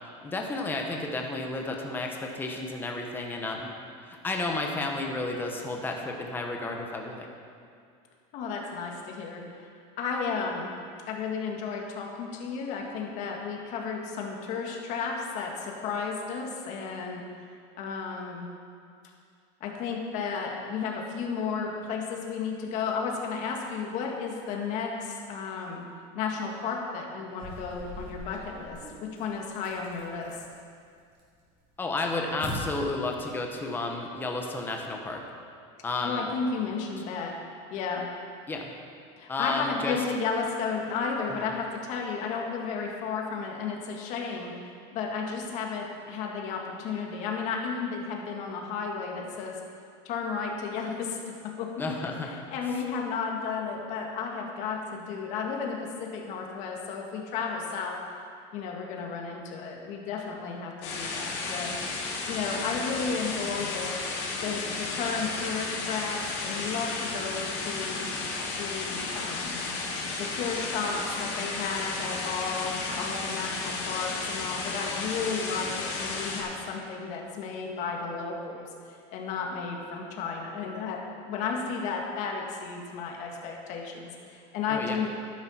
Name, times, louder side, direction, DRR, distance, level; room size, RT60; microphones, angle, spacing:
voice 1, 0.2-3.7 4.1-7.3 31.8-35.2 35.8-36.3 38.5-38.7 39.3-40.0 51.8-52.3 84.7-85.0, left 2 dB, 15° left, 1 dB, 1.1 m, -32 dB
voice 2, 8.3-9.7 10.0-10.7 11.1-17.3 17.8-18.5 19.6-25.9 26.1-30.4 36.0-37.3 37.7-38.1 39.2-49.6 50.0-58.0 58.5-61.7 62.3-64.0 64.3-68.1 68.6-69.6 70.2-85.1, left 5 dB, 50° left, 0 dB, 1.9 m, -33 dB
sound 1, 27.3-30.6 31.0-31.5 31.8-32.5, equal, 30° right, 3.2 m, -44 dB
sound 2, 60.8-76.4, left 3 dB, 70° left, 3.0 m, -33 dB
12.0 x 10.5 x 4.4 m, 2.3 s
supercardioid pair, 150°, 16 cm